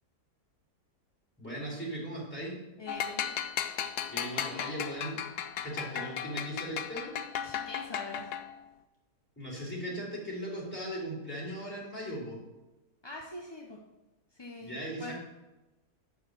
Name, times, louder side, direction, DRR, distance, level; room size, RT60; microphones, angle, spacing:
voice 1, 1.4-2.6 4.1-5.2 5.6-7.2 9.4-12.4 14.6-15.1, equal, 5° left, -5 dB, 3.8 m, -38 dB
voice 2, 2.8-3.3 7.4-8.3 13.0-13.8 14.3-15.1, left 2 dB, 25° left, -1 dB, 0.6 m, -44 dB
sound 1, 2.9-8.7, left 9 dB, 85° left, 1.2 m, -36 dB
11.5 x 4.0 x 7.5 m, 1.0 s
omnidirectional pair, 1.6 m